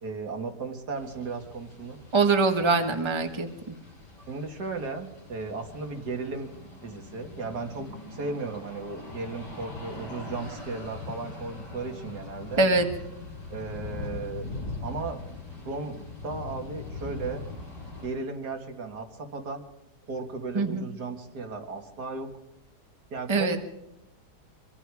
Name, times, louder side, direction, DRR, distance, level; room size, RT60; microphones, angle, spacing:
voice 1, 0.0-2.0 4.3-6.5 6.8-12.6 13.5-14.5 14.8-15.2 15.6-17.4 18.0-19.6 20.1-22.3 23.1-23.6, right 3 dB, 70° right, 4 dB, 2.5 m, -35 dB
sound 1, 1.0-18.1, left 3 dB, 85° left, 7.4 m, -41 dB
voice 2, 2.1-3.7 12.6-12.8 20.5-20.8 23.3-23.6, right 3 dB, 15° right, 5 dB, 1.5 m, -23 dB
24.0 x 24.0 x 4.9 m, 0.85 s
omnidirectional pair, 1.8 m